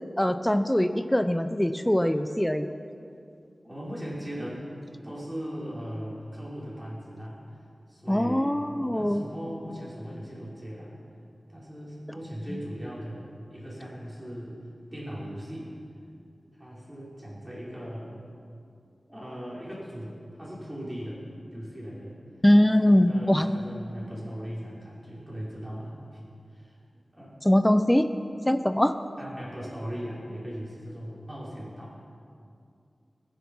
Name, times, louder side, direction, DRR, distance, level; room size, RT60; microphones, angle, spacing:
voice 1, 0.2-2.7 8.1-9.2 22.4-23.5 27.4-28.1 28.5-28.9, left 1 dB, 10° left, 10 dB, 0.6 m, -22 dB
voice 2, 3.6-4.6 5.0-7.6 7.9-10.9 11.5-14.6 14.9-15.7 16.5-18.2 19.1-21.2 21.5-22.2 22.8-26.2 26.5-26.8 27.1-27.4 29.2-32.0, equal, 15° right, -7 dB, 4.8 m, -38 dB
20.0 x 10.5 x 5.5 m, 2.5 s
wide cardioid pair, 80°, 0 cm